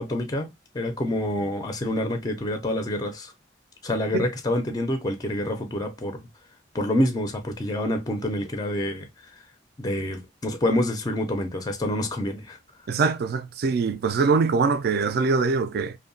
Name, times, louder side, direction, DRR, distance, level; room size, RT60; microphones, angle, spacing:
voice 1, 0.0-3.3 3.8-6.2 6.7-9.3 9.8-12.6, left 1 dB, 20° left, 0.4 m, -27 dB
voice 2, 12.9-16.0, right 4 dB, 60° right, 0.3 m, -23 dB
2.7 x 2.1 x 2.5 m
head